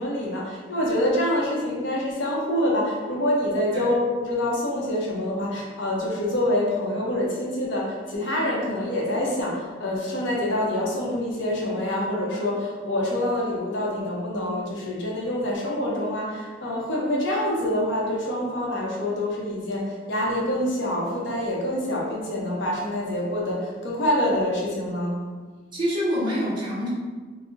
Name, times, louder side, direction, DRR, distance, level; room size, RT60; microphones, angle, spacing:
voice 1, 0.0-25.2, left 1 dB, 75° left, -3 dB, 0.7 m, -26 dB
voice 2, 25.7-26.9, equal, 25° right, -8 dB, 0.6 m, -26 dB
3.7 x 2.0 x 2.5 m, 1.4 s
head